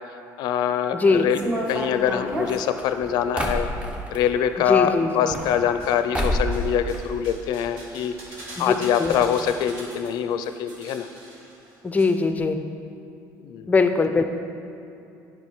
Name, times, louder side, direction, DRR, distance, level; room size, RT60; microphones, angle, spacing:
voice 1, 0.4-1.4 1.7-3.7 4.1-8.2 8.6-11.1 13.4-13.7, left 9 dB, 70° left, 10 dB, 0.4 m, -24 dB
voice 2, 0.9-1.3 4.7-5.4 8.6-8.7 9.0-9.2 11.8-12.6 13.7-14.2, left 4 dB, 20° left, 8 dB, 0.5 m, -21 dB
sound 1, 1.3-4.2 5.1-5.9 6.1-6.6 6.9-7.7 8.0-8.1 8.3-8.4 9.1-9.2 9.5-9.6, equal, 15° right, 1.0 m, -28 dB
sound 2, 5.1-5.9 6.2-12.0 12.3-12.4, right 1 dB, 85° right, 1.8 m, -43 dB
8.8 x 5.2 x 4.7 m, 2.7 s
cardioid pair, 95°, 7 cm